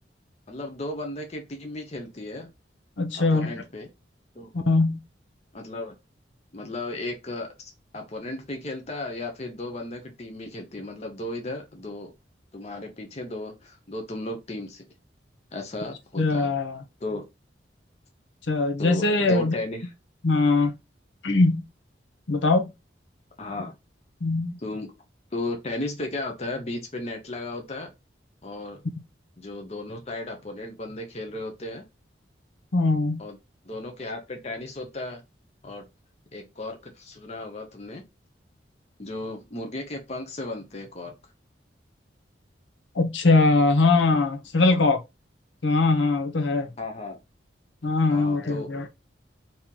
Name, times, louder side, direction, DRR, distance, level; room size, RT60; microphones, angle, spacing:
voice 1, 0.5-2.5 3.1-3.9 4.3-4.5 5.5-5.9 6.5-12.1 12.5-14.8 15.5-16.5 17.0-17.2 18.8-19.9 23.4-23.7 24.6-24.9 25.3-27.9 28.4-28.8 29.4-31.8 33.2-33.4 33.6-35.2 35.6-35.8 36.3-38.0 39.0-41.1 46.8-47.2 48.1-48.8, left 2 dB, 35° left, 0.7 m, -35 dB
voice 2, 3.0-3.5 4.5-5.0 16.2-16.8 18.5-19.5 20.2-20.7 21.2-21.6 22.3-22.7 24.2-24.6 32.7-33.2 42.9-45.0 45.6-46.7 47.8-48.9, left 3 dB, 80° left, 0.7 m, -21 dB
3.0 x 2.8 x 3.7 m
head